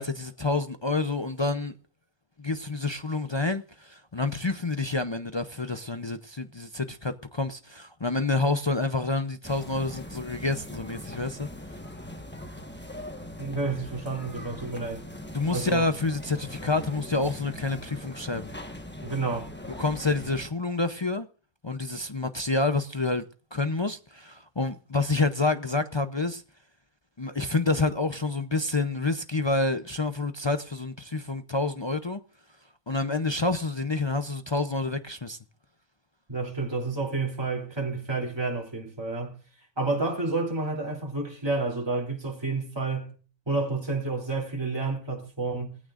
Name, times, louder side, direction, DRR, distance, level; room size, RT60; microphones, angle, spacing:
voice 1, 0.0-1.8 2.4-11.5 15.3-18.5 19.8-21.3 21.6-23.2 23.5-26.4 27.2-32.2 32.9-35.4, left 3 dB, 45° left, 0.3 m, -28 dB
sound 1, 9.4-20.5, left 1 dB, 10° left, 1.2 m, -41 dB
voice 2, 13.4-15.0 15.5-15.9 19.0-19.5 36.3-39.4 39.8-43.1 43.5-45.8, right 3 dB, 15° right, 3.0 m, -30 dB
21.0 x 15.5 x 2.5 m
omnidirectional pair, 1.5 m